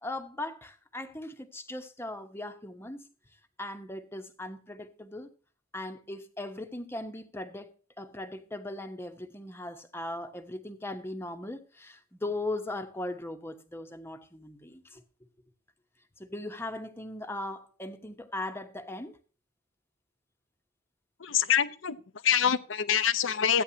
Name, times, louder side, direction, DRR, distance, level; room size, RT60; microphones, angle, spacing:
voice 1, 0.0-3.1 3.6-5.3 5.7-15.0 16.2-19.2, left 2 dB, 10° left, 1.1 m, -39 dB
voice 2, 21.2-23.6, left 8 dB, 75° left, 0.8 m, -26 dB
14.5 x 9.6 x 2.9 m
head